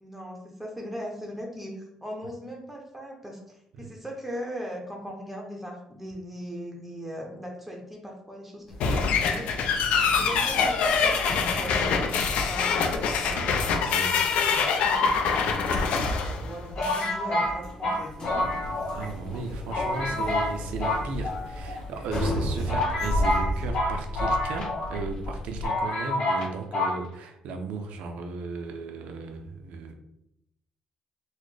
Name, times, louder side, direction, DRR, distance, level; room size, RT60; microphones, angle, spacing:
voice 1, 0.0-9.5 10.2-15.1 15.8-18.5 19.4-19.7, equal, ahead, 0 dB, 0.6 m, -39 dB
sound 1, 8.7-25.6, left 1 dB, 40° left, 1.0 m, -35 dB
sound 2, 8.8-17.1, left 5 dB, 80° left, 0.4 m, -25 dB
voice 2, 13.2-14.2 18.9-29.9, right 4 dB, 85° right, 5 dB, 0.5 m, -36 dB
sound 3, 15.3-16.1 16.8-19.1 19.3-19.4 19.7-20.5 20.8-21.8 22.3-22.4 22.7-25.0 25.3-25.4 25.6-26.5 26.7-27.0, left 1 dB, 55° left, 1.3 m, -28 dB
4.0 x 2.1 x 3.2 m, 0.80 s
cardioid pair, 155°, 2 cm